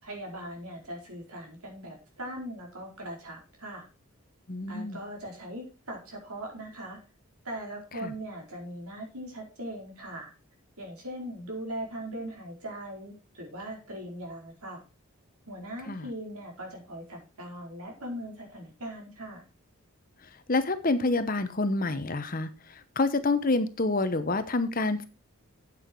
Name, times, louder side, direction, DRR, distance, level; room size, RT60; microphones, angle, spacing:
voice 1, 0.0-3.9 4.7-7.0 7.4-10.3 10.8-14.8 15.5-19.4, right 1 dB, 85° right, 1 dB, 4.5 m, -40 dB
voice 2, 4.5-5.0 8.0-8.1 15.9-16.0 20.5-25.0, left 3 dB, 40° left, 11 dB, 0.9 m, -28 dB
8.8 x 8.6 x 4.6 m, 0.32 s
head